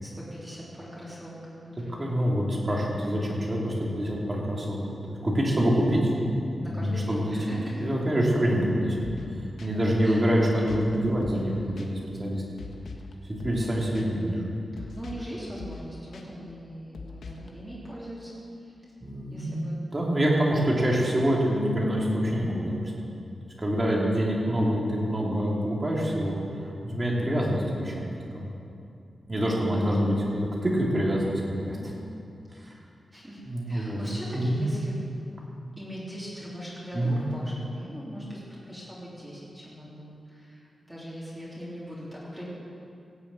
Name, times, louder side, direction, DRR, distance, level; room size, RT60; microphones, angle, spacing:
voice 1, 0.0-2.1 6.6-7.8 10.0-10.2 14.7-18.7 19.3-19.8 29.6-30.0 33.1-33.4 33.7-35.0 35.8-38.4 38.7-42.4, equal, 5° right, -8 dB, 3.2 m, -40 dB
voice 2, 2.0-6.1 6.5-7.4 7.8-9.0 9.6-12.4 13.3-14.5 19.0-19.6 19.9-22.9 23.6-26.4 26.8-28.1 28.3-28.5 29.3-31.9 32.5-32.7 33.4-34.0 34.3-34.5 36.9-37.2, equal, 25° right, -3 dB, 2.9 m, -26 dB
sound 1, 9.0-9.3 9.6-9.7 10.7-10.9 11.2-11.5 11.8-11.9 12.6-13.1 13.4-13.7 13.9-14.1 14.8-15.3 15.6-15.8 16.1-16.2 16.9-17.5, left 4 dB, 80° left, 1.3 m, -41 dB
17.5 x 7.1 x 8.4 m, 2.6 s
wide cardioid pair, 155°, 0 cm